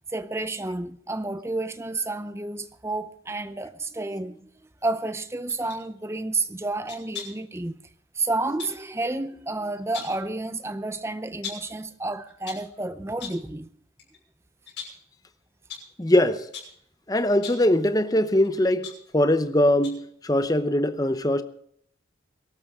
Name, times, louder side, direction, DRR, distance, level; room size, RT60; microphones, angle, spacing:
voice 1, 0.1-4.5 4.8-7.8 8.2-13.7, right 2 dB, 15° right, 0.6 m, -30 dB
sound 1, 5.5-5.8 6.9-7.5 8.6-8.8 9.7-10.3 11.4-11.8 12.3-12.7 13.2-13.5 14.0-14.2 14.7-15.1 15.7-15.9 16.5-16.8 17.3-17.7 18.4-19.5 19.8-20.1 20.4-20.5, left 7 dB, 75° left, 6.6 m, -40 dB
voice 2, 16.0-16.5 17.1-21.4, left 1 dB, 20° left, 0.8 m, -22 dB
22.5 x 13.0 x 3.7 m
head